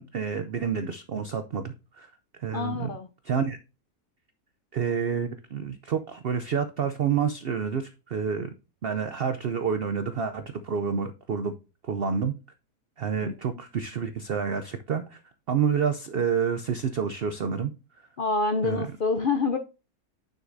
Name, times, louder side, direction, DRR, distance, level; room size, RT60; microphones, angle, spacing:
voice 1, 0.0-2.1 2.4-2.9 3.2-3.6 4.7-8.5 8.8-11.5 11.8-12.3 13.0-15.2 15.5-17.7 18.6-18.9, right 6 dB, 85° right, 0.5 m, -28 dB
voice 2, 2.5-3.1 13.2-13.3 18.2-19.6, left 4 dB, 70° left, 0.5 m, -26 dB
9.4 x 6.4 x 2.6 m
omnidirectional pair, 1.7 m